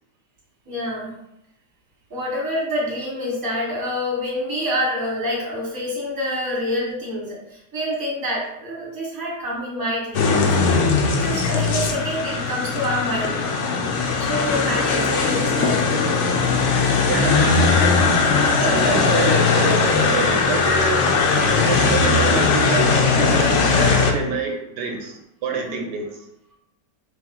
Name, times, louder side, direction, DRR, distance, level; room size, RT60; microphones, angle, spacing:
voice 1, 0.7-1.1 2.1-13.4 14.2-15.9 25.5-25.8, equal, 15° right, -5 dB, 1.1 m, -27 dB
sound 1, 10.1-24.1, left 4 dB, 85° left, 0.6 m, -19 dB
voice 2, 17.1-18.1 18.5-21.1 21.6-26.3, right 4 dB, 80° right, 1 dB, 1.2 m, -27 dB
3.5 x 3.0 x 3.7 m, 0.81 s
omnidirectional pair, 1.9 m